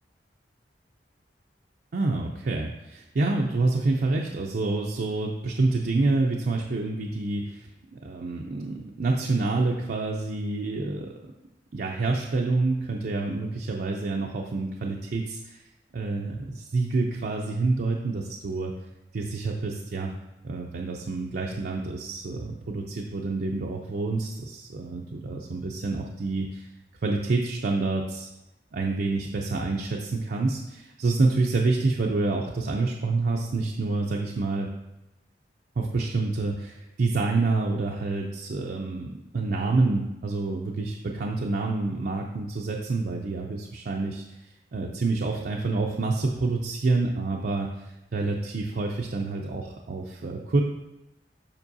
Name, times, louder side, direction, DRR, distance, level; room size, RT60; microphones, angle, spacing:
voice 1, 1.9-11.1 11.7-15.6 15.9-18.7 19.1-20.1 20.4-26.7 27.0-28.3 28.7-34.7 35.8-50.6, right 3 dB, 60° right, 0 dB, 0.5 m, -27 dB
7.2 x 5.3 x 2.7 m, 0.96 s
head